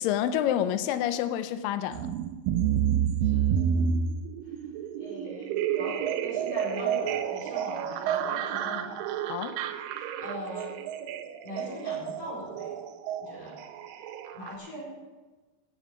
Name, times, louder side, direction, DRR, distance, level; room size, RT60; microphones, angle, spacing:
voice 1, 0.0-2.1 9.3-9.6, left 10 dB, 80° left, 11 dB, 2.0 m, -28 dB
sound 1, 1.9-14.5, right 8 dB, 80° right, 2.2 m, -30 dB
voice 2, 3.2-3.6 4.4-4.6 5.0-8.9 9.9-10.8 11.4-12.7 13.2-13.6 14.3-14.9, equal, 40° left, -5 dB, 5.7 m, -41 dB
14.5 x 7.0 x 7.2 m, 1.2 s
omnidirectional pair, 4.5 m